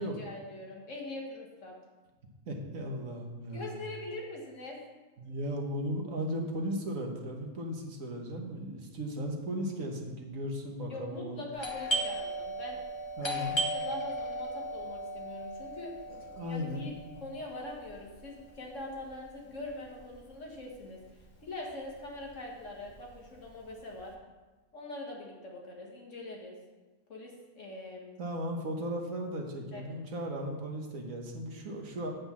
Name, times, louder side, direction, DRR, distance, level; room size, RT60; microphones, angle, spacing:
voice 1, 0.0-1.8 3.5-4.8 10.9-12.8 13.2-13.4 13.7-15.9 16.4-16.9 17.2-21.0 21.4-24.2 24.7-26.6 27.1-28.3 29.7-29.8, left 2 dB, 65° left, -1 dB, 2.0 m, -43 dB
voice 2, 2.5-3.8 5.2-11.4 13.2-13.6 16.1-16.9 28.2-32.1, equal, 75° right, 1 dB, 1.6 m, -36 dB
Doorbell, 11.6-21.0 21.2-21.3 22.0-22.3 22.6-24.0, right 1 dB, 20° left, 1.0 m, -37 dB
7.7 x 5.3 x 7.3 m, 1.2 s
omnidirectional pair, 1.4 m